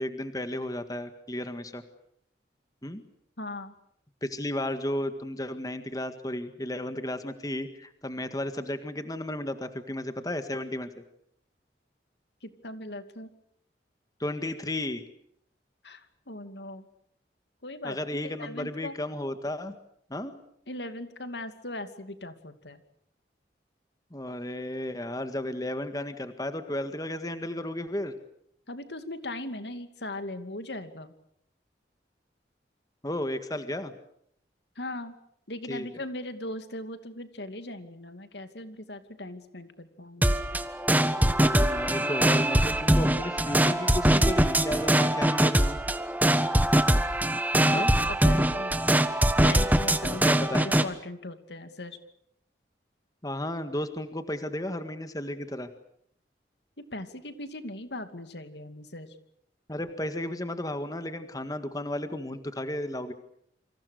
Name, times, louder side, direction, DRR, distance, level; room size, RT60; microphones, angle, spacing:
voice 1, 0.0-1.8 2.8-3.0 4.2-10.9 14.2-15.0 17.8-19.8 20.1-20.3 24.1-28.1 33.0-33.9 35.7-35.9 41.4-45.8 47.7-47.9 50.2-50.7 53.2-55.7 59.7-63.1, left 1 dB, 20° left, 9 dB, 1.8 m, -33 dB
voice 2, 3.4-3.7 12.4-13.3 15.8-16.9 17.6-18.0 18.2-18.9 20.7-22.8 28.7-31.1 34.8-35.1 35.5-40.4 47.6-48.8 49.4-50.3 50.6-52.0 56.8-59.1, left 1 dB, 75° left, 9 dB, 2.6 m, -39 dB
sound 1, 40.2-50.9, right 1 dB, 10° right, 1.3 m, -23 dB
28.5 x 26.0 x 6.6 m, 0.71 s
head